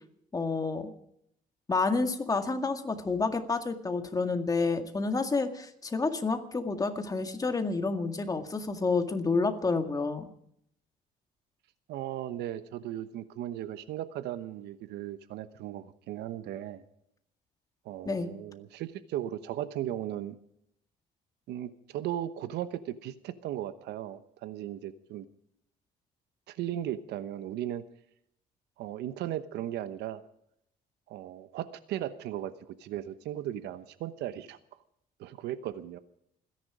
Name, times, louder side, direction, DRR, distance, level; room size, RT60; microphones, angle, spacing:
voice 1, 0.3-0.9 1.7-10.2 18.1-18.3, left 3 dB, 20° left, 6 dB, 2.0 m, -29 dB
voice 2, 11.9-16.8 17.8-20.4 21.5-25.3 26.5-27.8 28.8-30.2 31.1-34.6 35.2-36.0, right 12 dB, 80° right, 13 dB, 1.0 m, -37 dB
27.0 x 10.5 x 4.9 m, 0.71 s
cardioid pair, 110°, 17 cm